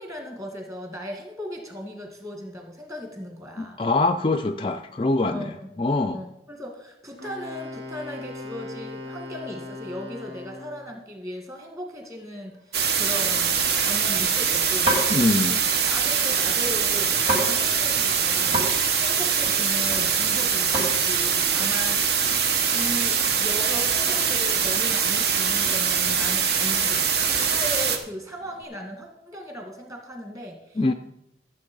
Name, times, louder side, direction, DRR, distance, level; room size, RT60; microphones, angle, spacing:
voice 1, 0.0-3.8 5.3-5.7 6.1-15.0 15.8-18.7 19.0-22.0 22.7-30.9, equal, 15° right, 3 dB, 2.0 m, -37 dB
voice 2, 3.6-6.2 15.1-15.6 30.8-30.9, left 2 dB, 30° left, 8 dB, 0.4 m, -24 dB
Wind instrument woodwind instrument, 7.2-10.9, left 2 dB, 75° right, 2.3 m, -38 dB
sound 1, 10.6-10.9 11.4-11.7 12.0-12.1 12.5-12.8 13.6-14.2 14.9-15.2 16.5-17.5 17.8-17.9 18.2-18.7 18.9-20.3 20.6-20.9 21.3-21.6 22.0-24.7 25.6-25.8 26.1-27.7 28.3-28.6, right 1 dB, 35° right, 3.4 m, -32 dB
sound 2, 12.7-28.0, right 7 dB, 55° right, 1.2 m, -23 dB
13.5 x 7.7 x 5.3 m, 0.85 s
head